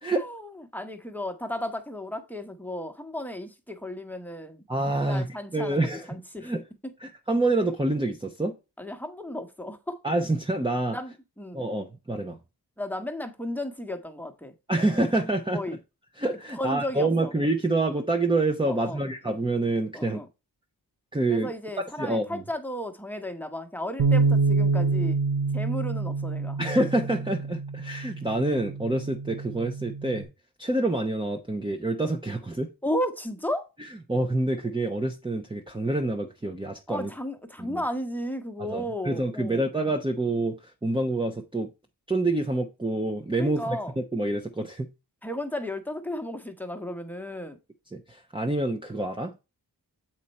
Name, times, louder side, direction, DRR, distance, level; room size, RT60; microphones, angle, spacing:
voice 1, 0.2-4.6 5.0-6.5 8.8-10.0 10.9-11.6 12.8-14.5 15.5-15.8 16.5-17.3 18.7-19.0 19.9-20.3 21.3-25.2 25.5-26.6 32.8-33.7 36.9-39.6 43.4-43.9 45.2-47.6, left 1 dB, 5° left, 1.2 m, -34 dB
voice 2, 4.7-6.1 6.4-6.6 7.0-8.5 10.0-11.0 11.5-12.4 14.7-15.6 16.2-20.2 21.1-21.5 22.0-22.4 26.6-30.3 30.6-32.7 34.1-37.1 37.6-37.8 38.6-40.6 40.8-41.7 42.1-44.9 47.9-49.4, right 2 dB, 15° right, 0.8 m, -27 dB
Bass guitar, 24.0-30.2, right 4 dB, 80° right, 1.4 m, -27 dB
7.5 x 4.5 x 4.2 m
wide cardioid pair, 70°, 39 cm